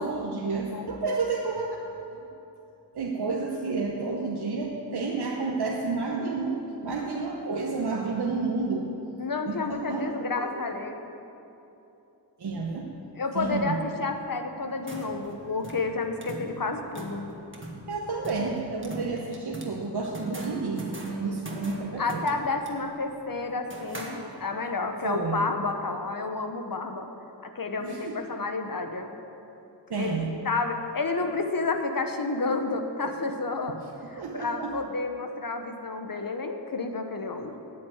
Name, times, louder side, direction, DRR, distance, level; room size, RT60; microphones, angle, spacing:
voice 1, 0.0-1.7 2.1-2.2 2.9-8.9 9.5-10.6 12.4-13.0 13.3-13.8 17.9-22.3 25.0-25.5 27.8-28.2 29.9-30.3 34.2-34.8, right 4 dB, 65° right, -1 dB, 1.0 m, -30 dB
voice 2, 0.5-0.9 9.2-11.0 13.2-17.3 22.0-27.1 27.4-29.1 29.9-33.8 34.1-37.5, left 3 dB, 50° left, 6 dB, 1.1 m, -30 dB
sound 1, 14.6-24.7, right 1 dB, 30° right, 1.8 m, -42 dB
8.8 x 8.7 x 8.0 m, 2.9 s
cardioid pair, 45°, 42 cm